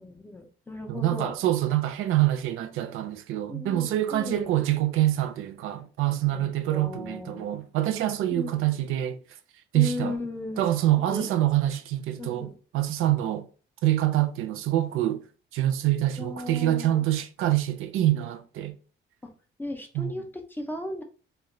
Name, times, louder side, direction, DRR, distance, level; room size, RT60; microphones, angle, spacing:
voice 1, 0.0-1.3 3.5-4.5 6.3-7.5 8.3-8.6 9.7-10.6 11.1-11.3 12.2-12.5 16.2-17.0 19.6-21.0, left 2 dB, 10° left, 0.3 m, -36 dB
voice 2, 0.9-9.2 9.7-10.1 10.6-13.5 13.8-15.2 15.5-18.7 19.9-20.1, right 13 dB, 80° right, 0.4 m, -25 dB
2.2 x 2.1 x 3.6 m
cardioid pair, 155°, 21 cm